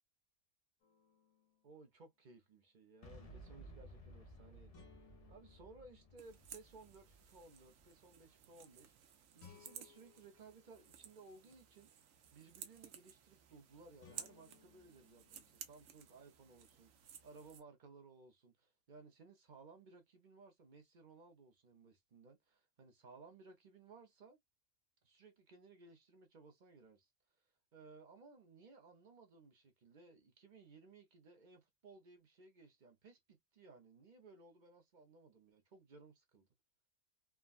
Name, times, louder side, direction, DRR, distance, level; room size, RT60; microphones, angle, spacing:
sound 1, 0.8-1.8 4.7-6.9 9.4-11.5 14.0-16.2, left 6 dB, 85° left, 1.6 m, -66 dB
voice 1, 1.6-4.8 5.3-24.4 25.0-27.1 27.4-36.5, right 3 dB, 45° right, 0.7 m, -60 dB
Boom, 3.0-8.9, right 1 dB, 40° left, 0.5 m, -58 dB
sound 2, 6.2-17.6, right 8 dB, 75° right, 1.0 m, -56 dB
3.4 x 2.2 x 2.3 m
omnidirectional pair, 1.4 m